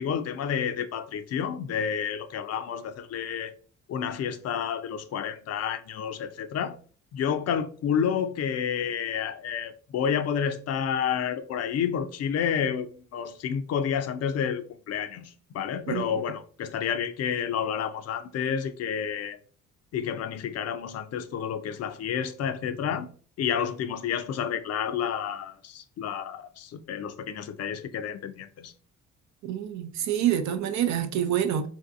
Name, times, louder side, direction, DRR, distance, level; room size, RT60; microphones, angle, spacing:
voice 1, 0.0-3.5 3.9-6.8 7.1-19.4 19.9-23.1 23.4-28.7, left 8 dB, 55° left, 0.4 m, -30 dB
voice 2, 29.4-31.7, right 10 dB, 65° right, 0.5 m, -27 dB
3.5 x 2.6 x 2.4 m
cardioid pair, 90°, 30 cm